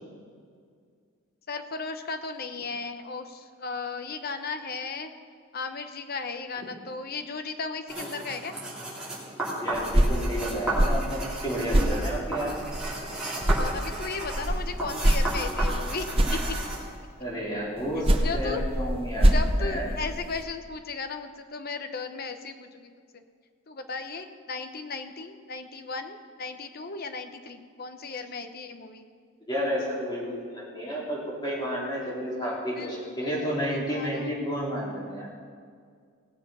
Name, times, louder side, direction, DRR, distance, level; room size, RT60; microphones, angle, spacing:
voice 1, 1.5-5.1 5.5-8.5 13.6-16.1 16.3-16.4 18.2-18.6 19.3-23.2 23.7-29.0 32.7-34.4, left 4 dB, 45° left, 7 dB, 0.8 m, -36 dB
sound 1, 7.9-16.8, right 1 dB, 5° right, 3.1 m, -34 dB
voice 2, 9.6-12.5 17.2-19.3 19.6-19.9 29.5-35.3, equal, 20° left, -6 dB, 3.6 m, -31 dB
sound 2, 9.7-13.1 13.4-17.0 17.8-20.4, right 1 dB, 25° right, 0.9 m, -25 dB
18.0 x 7.4 x 5.6 m, 2.1 s
head